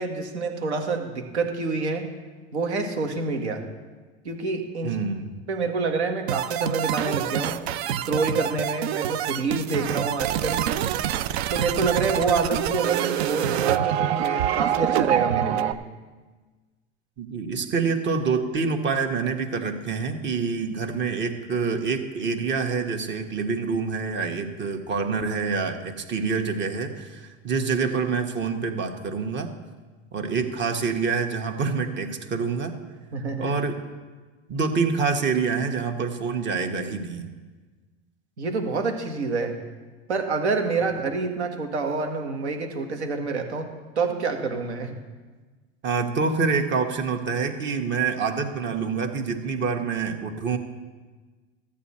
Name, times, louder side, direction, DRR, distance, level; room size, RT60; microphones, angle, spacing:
voice 1, 0.0-2.1 2.5-3.6 4.3-5.0 5.5-7.6 8.0-10.7 11.5-15.8 33.1-33.6 38.4-39.6 40.1-43.7 44.0-45.0, right 4 dB, 90° right, 4 dB, 1.7 m, -27 dB
voice 2, 4.8-5.3 17.2-29.5 30.1-32.8 33.4-33.8 34.5-37.3 45.8-50.6, right 5 dB, 35° right, 6 dB, 1.4 m, -26 dB
sound 1, 6.3-15.7, right 10 dB, 70° right, 0.6 m, -26 dB
13.5 x 8.6 x 4.3 m, 1.3 s
hypercardioid pair, 100°, 33 cm